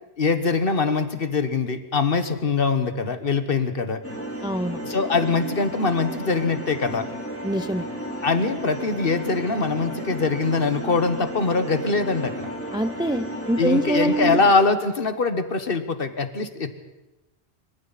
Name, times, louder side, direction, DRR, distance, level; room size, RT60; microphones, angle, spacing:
voice 1, 0.2-4.0 4.8-7.1 8.2-12.3 13.6-16.8, left 4 dB, 55° left, 9 dB, 1.5 m, -23 dB
sound 1, 4.0-14.5, right 1 dB, 10° left, 3.1 m, -33 dB
voice 2, 4.4-4.8 7.4-7.9 12.7-14.4, right 1 dB, 5° right, 12 dB, 0.4 m, -24 dB
25.5 x 24.5 x 4.2 m, 1.0 s
omnidirectional pair, 1.1 m